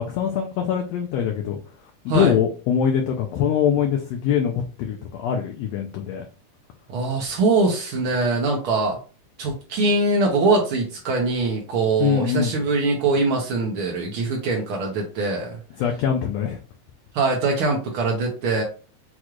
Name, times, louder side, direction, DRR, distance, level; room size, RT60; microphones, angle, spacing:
voice 1, 0.0-1.6 2.0-6.2 12.0-12.6 15.8-16.6, left 8 dB, 80° left, 2 dB, 1.5 m, -23 dB
voice 2, 6.9-9.0 9.4-15.6 17.1-18.6, right 3 dB, 85° right, 0 dB, 1.1 m, -22 dB
6.2 x 2.4 x 3.0 m, 0.36 s
omnidirectional pair, 3.6 m